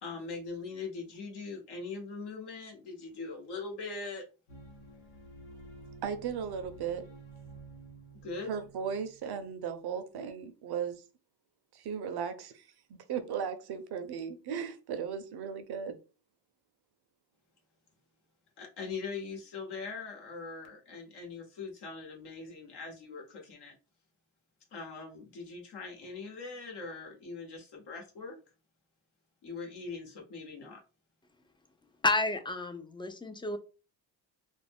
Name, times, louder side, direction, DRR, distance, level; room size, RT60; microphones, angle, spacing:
voice 1, 0.0-4.2 8.2-8.5 18.6-23.7 24.7-28.4 29.4-30.8, left 4 dB, 60° left, 1.1 m, -41 dB
sound 1, 4.5-9.8, right 3 dB, 85° left, 0.9 m, -51 dB
voice 2, 6.0-7.1 8.5-11.0 11.7-12.7 13.1-16.0, right 7 dB, 60° right, 0.7 m, -36 dB
voice 3, 32.0-33.6, left 2 dB, 10° left, 0.4 m, -30 dB
2.5 x 2.0 x 3.4 m
supercardioid pair, 65°, 45 cm